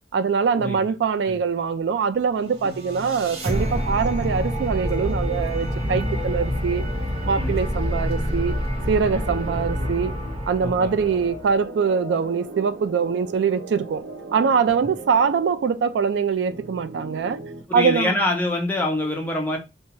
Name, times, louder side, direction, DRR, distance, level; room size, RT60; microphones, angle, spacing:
voice 1, 0.1-6.8 7.2-8.5 8.9-10.1 10.5-14.0 14.3-17.4 17.7-18.2, right 6 dB, 70° right, 0.3 m, -23 dB
sound 1, 2.4-11.6, equal, 35° right, 0.6 m, -27 dB
sound 2, 9.1-17.6, right 2 dB, 85° right, 0.7 m, -39 dB
voice 2, 10.6-10.9 17.7-19.6, left 1 dB, 10° left, 0.6 m, -25 dB
2.8 x 2.2 x 2.9 m
head